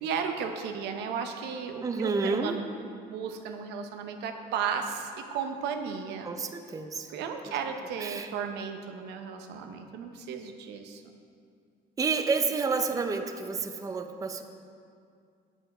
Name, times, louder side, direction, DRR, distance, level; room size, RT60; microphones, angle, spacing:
voice 1, 0.0-2.6 3.1-6.3 7.1-11.1, right 6 dB, 80° right, 5 dB, 0.8 m, -34 dB
voice 2, 1.8-2.6 6.2-7.1 8.0-8.3 12.0-14.4, right 4 dB, 20° right, 6 dB, 0.5 m, -29 dB
8.1 x 7.7 x 4.9 m, 2.3 s
cardioid pair, 110°, 17 cm